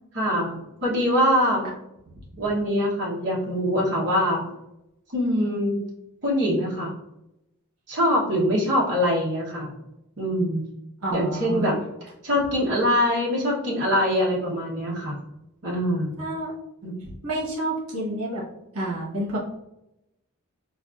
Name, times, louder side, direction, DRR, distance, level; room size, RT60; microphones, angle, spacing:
voice 1, 0.1-1.6 2.4-4.5 5.1-5.8 6.2-6.9 7.9-9.8 10.2-10.6 11.1-11.7 12.2-15.2 15.6-16.1 16.8-16.9, equal, 55° right, -5 dB, 0.9 m, -23 dB
voice 2, 11.0-11.7 16.2-16.5 17.0-18.4 18.7-19.4, right 2 dB, 80° right, -3 dB, 1.1 m, -29 dB
5.0 x 2.4 x 2.4 m, 0.86 s
head